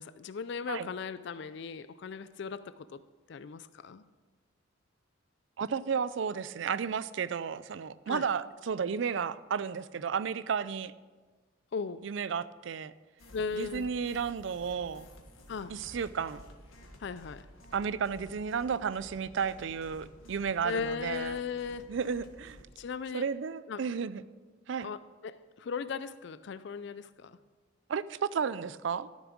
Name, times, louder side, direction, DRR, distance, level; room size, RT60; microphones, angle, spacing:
voice 1, 0.0-3.0 3.3-4.0 8.1-8.3 11.7-12.0 13.3-13.9 15.5-15.8 17.0-17.5 20.6-21.9 22.8-23.2 23.7-23.8 24.8-27.4, left 5 dB, 55° left, 14 dB, 0.4 m, -37 dB
voice 2, 5.6-10.9 12.0-12.9 13.5-15.1 15.7-16.4 17.7-21.4 21.9-22.6 23.1-24.2 24.7-24.9 27.9-29.1, right 6 dB, 65° right, 16 dB, 0.4 m, -33 dB
sound 1, 13.2-22.6, equal, 85° left, 1.7 m, -53 dB
13.0 x 7.2 x 6.1 m, 1.4 s
head